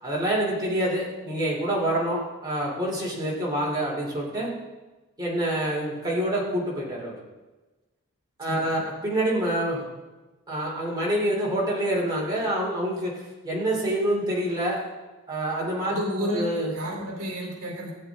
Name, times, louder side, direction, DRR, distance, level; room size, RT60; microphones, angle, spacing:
voice 1, 0.0-4.5 5.2-7.1 8.4-9.9 10.5-14.8 15.3-16.7, right 1 dB, 20° right, -5 dB, 3.1 m, -27 dB
voice 2, 8.5-8.8 15.9-17.9, equal, 60° right, -1 dB, 2.8 m, -31 dB
15.5 x 8.5 x 3.6 m, 1.2 s
head